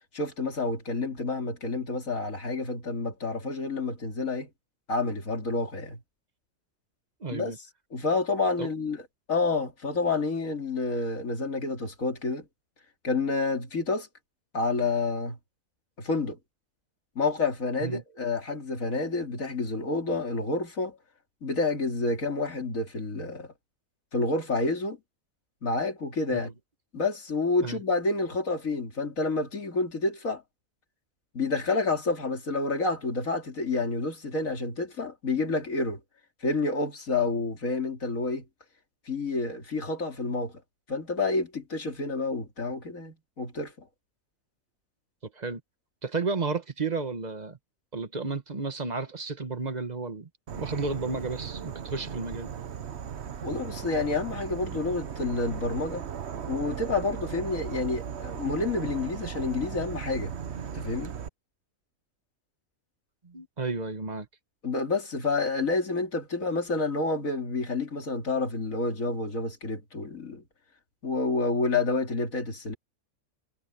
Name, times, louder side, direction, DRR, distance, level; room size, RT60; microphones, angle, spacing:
voice 1, 0.1-4.5 4.9-6.0 7.3-7.5 7.9-9.0 9.3-12.5 13.0-14.1 14.5-15.4 16.0-16.4 17.1-21.0 21.4-23.5 24.1-25.0 25.6-26.5 26.9-30.4 31.3-36.0 36.4-38.4 39.1-40.5 40.9-43.7 53.4-56.1 56.5-60.3 60.7-61.1 64.6-70.4 71.0-72.7, left 3 dB, 65° left, 3.2 m, -29 dB
voice 2, 7.2-7.6 8.6-8.7 17.8-18.0 26.3-26.4 27.6-27.8 45.3-45.6 46.0-47.6 47.9-52.5 63.2-64.3, right 4 dB, 30° right, 1.5 m, -32 dB
Insect / Frog, 50.5-61.3, right 8 dB, 50° right, 1.1 m, -37 dB
omnidirectional pair, 1.5 m